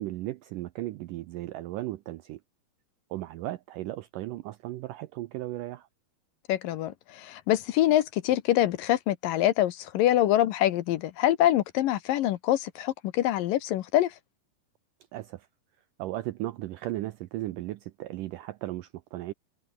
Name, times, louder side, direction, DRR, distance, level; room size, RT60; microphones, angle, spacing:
voice 1, 0.0-2.4 3.1-5.9 15.1-15.5 16.0-19.3, right 16 dB, 85° right, 1.9 m, -36 dB
voice 2, 6.5-14.1, left 13 dB, 70° left, 2.4 m, -25 dB
omnidirectional pair, 4.6 m